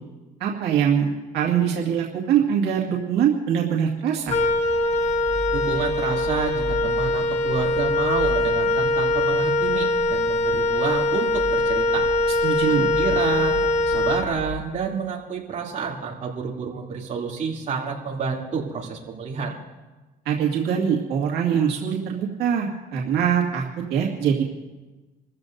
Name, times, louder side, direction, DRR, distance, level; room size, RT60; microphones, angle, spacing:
voice 1, 0.4-4.4 12.4-12.9 20.3-23.6 23.9-24.4, right 8 dB, 80° right, -2 dB, 2.1 m, -23 dB
Wind instrument woodwind instrument, 4.3-14.7, left 2 dB, 40° left, 1.5 m, -22 dB
voice 2, 5.5-12.1 12.7-19.6, right 5 dB, 45° right, -2 dB, 2.9 m, -29 dB
28.5 x 14.5 x 2.6 m, 1.2 s
cardioid pair, 110°, 17 cm